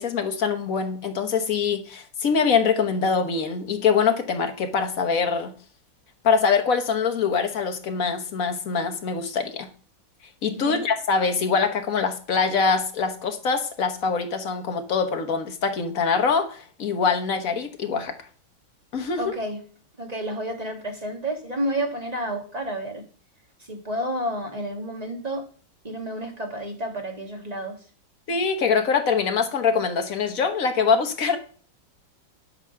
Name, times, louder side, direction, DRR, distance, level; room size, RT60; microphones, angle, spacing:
voice 1, 0.0-5.5 6.2-9.7 10.4-18.2 18.9-19.3 28.3-31.4, left 5 dB, 50° left, 6 dB, 1.5 m, -24 dB
voice 2, 19.2-19.6 20.0-23.0 23.7-25.5 25.8-27.8, right 1 dB, 20° right, 2 dB, 1.6 m, -30 dB
11.0 x 5.0 x 5.8 m, 0.43 s
omnidirectional pair, 2.2 m